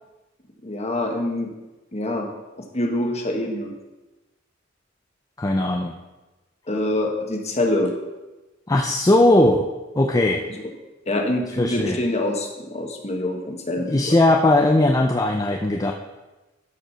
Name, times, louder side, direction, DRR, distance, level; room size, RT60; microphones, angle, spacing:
voice 1, 0.6-1.5 1.9-2.3 2.6-3.7 6.7-7.9 11.1-14.2, left 1 dB, 35° left, 2 dB, 1.4 m, -25 dB
voice 2, 5.4-5.9 8.7-9.6 10.0-10.4 11.6-12.0 13.9-15.9, left 1 dB, 20° left, 2 dB, 0.5 m, -18 dB
12.5 x 5.1 x 5.7 m, 1.1 s
head